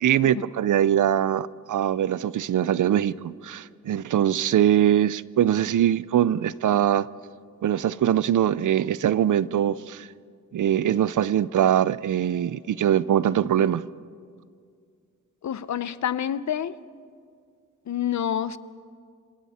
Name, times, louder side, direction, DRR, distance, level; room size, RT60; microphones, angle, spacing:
voice 1, 0.0-7.1 7.6-10.1 10.5-13.8, right 10 dB, 80° right, 18 dB, 0.5 m, -22 dB
voice 2, 15.4-16.7 17.9-18.6, left 9 dB, 65° left, 15 dB, 0.7 m, -27 dB
27.5 x 26.5 x 4.3 m, 2.2 s
wide cardioid pair, 175°, 30 cm